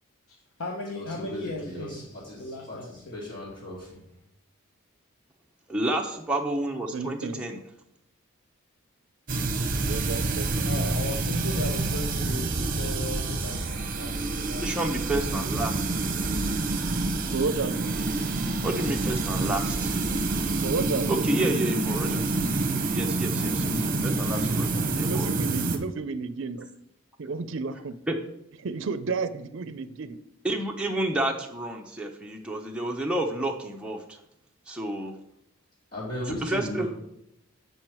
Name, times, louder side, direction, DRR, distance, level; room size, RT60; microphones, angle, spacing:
voice 1, 0.3-3.2 10.6-15.0, left 2 dB, 80° left, 1 dB, 0.8 m, -37 dB
voice 2, 0.9-4.0 35.9-36.9, left 1 dB, 45° left, -9 dB, 2.1 m, -36 dB
voice 3, 5.7-7.6 14.6-15.7 18.6-19.9 21.1-25.3 28.1-28.2 30.4-34.2 34.7-35.2 36.2-36.8, right 1 dB, 5° right, 0 dB, 0.6 m, -30 dB
voice 4, 6.9-7.4 9.8-11.0 17.3-18.0 20.6-21.1 24.8-26.7 27.2-28.0 28.6-30.2, right 4 dB, 60° right, 13 dB, 0.5 m, -32 dB
sound 1, 9.3-25.8, right 3 dB, 40° right, 0.8 m, -27 dB
7.8 x 5.4 x 4.5 m, 0.82 s
head